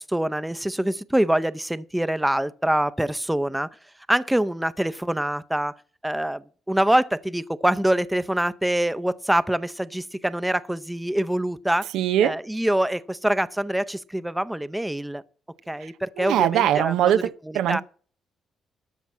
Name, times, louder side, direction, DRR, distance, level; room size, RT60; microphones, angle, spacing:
voice 1, 0.0-3.7 4.1-5.7 6.0-11.9 12.2-15.2 15.7-17.1 17.5-17.8, right 1 dB, 5° right, 0.6 m, -25 dB
voice 2, 11.9-12.3 15.8-15.9 16.2-17.8, right 11 dB, 85° right, 0.5 m, -21 dB
13.0 x 5.7 x 7.3 m
cardioid pair, 90°, 0 cm